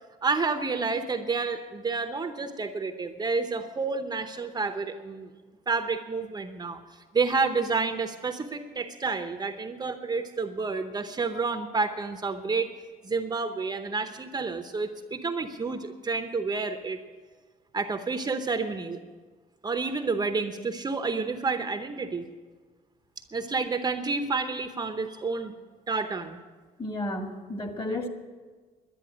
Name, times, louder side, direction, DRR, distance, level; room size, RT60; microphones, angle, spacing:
voice 1, 0.2-5.3 5.7-6.8 7.1-12.7 13.0-17.0 17.7-19.0 19.6-22.3 23.3-25.5 25.9-26.4, right 4 dB, 25° right, 7 dB, 0.8 m, -29 dB
voice 2, 26.8-28.1, left 1 dB, 30° left, 4 dB, 2.0 m, -32 dB
10.5 x 10.5 x 8.9 m, 1.4 s
cardioid pair, 110°, 17 cm